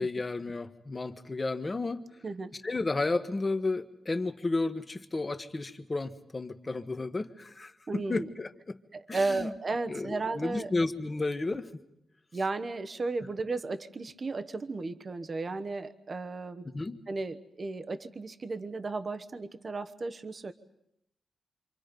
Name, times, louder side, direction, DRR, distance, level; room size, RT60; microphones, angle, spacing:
voice 1, 0.0-2.0 2.6-8.8 9.1-9.5 9.9-11.7 16.6-17.0, left 3 dB, 25° left, 9 dB, 1.4 m, -32 dB
voice 2, 7.9-8.2 8.9-10.7 12.3-16.7 17.1-20.5, right 3 dB, 35° right, 9 dB, 1.1 m, -34 dB
28.0 x 26.5 x 5.3 m, 0.78 s
wide cardioid pair, 125°, 0 cm